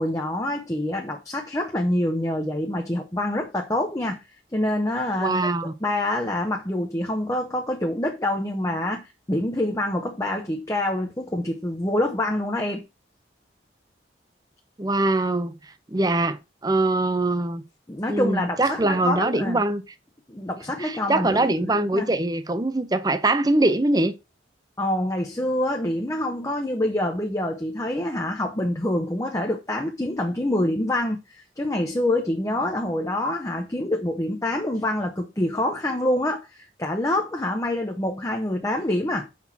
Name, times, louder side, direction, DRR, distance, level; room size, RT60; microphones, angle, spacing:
voice 1, 0.0-4.2 4.5-5.4 5.8-12.8 17.9-19.6 20.3-21.5 21.9-22.1 24.8-39.3, left 1 dB, 15° left, 0.8 m, -26 dB
voice 2, 5.2-5.7 14.8-15.5 15.9-17.6 18.1-19.8 20.8-24.1, right 2 dB, 20° right, 0.6 m, -23 dB
6.0 x 4.3 x 5.9 m
head